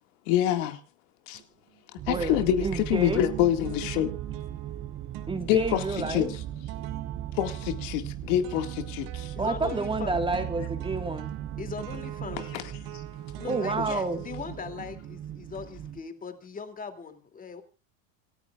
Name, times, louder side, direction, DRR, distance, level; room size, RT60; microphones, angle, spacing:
voice 1, 0.3-0.8 1.3-1.4 2.1-4.1 5.5-5.8 6.1-6.3 7.4-9.3 12.5-12.6, left 11 dB, 65° left, 2.0 m, -26 dB
sound 1, 1.3-1.8 2.1-15.5, right 16 dB, 55° right, 2.0 m, -44 dB
sound 2, 2.0-16.0, right 11 dB, 30° right, 1.1 m, -38 dB
voice 2, 2.1-3.2 5.3-6.3 9.4-11.3 13.4-14.2, right 3 dB, 15° right, 1.6 m, -30 dB
voice 3, 9.3-10.2 11.6-12.7 13.4-17.6, left 5 dB, 20° left, 2.6 m, -39 dB
27.5 x 13.5 x 2.4 m
supercardioid pair, 120°, 40 cm